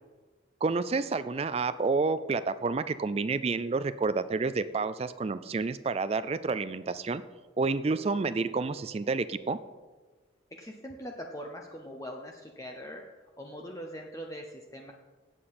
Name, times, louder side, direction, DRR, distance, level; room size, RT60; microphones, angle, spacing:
voice 1, 0.6-7.2 7.6-9.6, right 4 dB, 30° right, 13 dB, 0.3 m, -29 dB
voice 2, 10.6-13.0 13.4-14.9, equal, 15° left, 1 dB, 0.8 m, -42 dB
17.5 x 7.7 x 4.2 m, 1.3 s
head